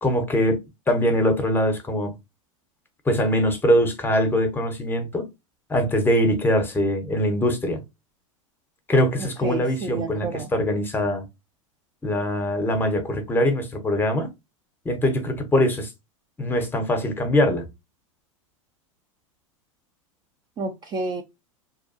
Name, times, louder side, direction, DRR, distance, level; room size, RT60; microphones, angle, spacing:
voice 1, 0.0-2.2 3.1-5.3 5.7-7.8 8.9-11.2 12.0-14.3 14.8-15.9 16.4-17.7, equal, 10° left, 0.7 m, -22 dB
voice 2, 9.2-10.5 20.6-21.2, right 4 dB, 25° right, 0.3 m, -30 dB
2.7 x 2.2 x 2.5 m
hypercardioid pair, 105°, 18 cm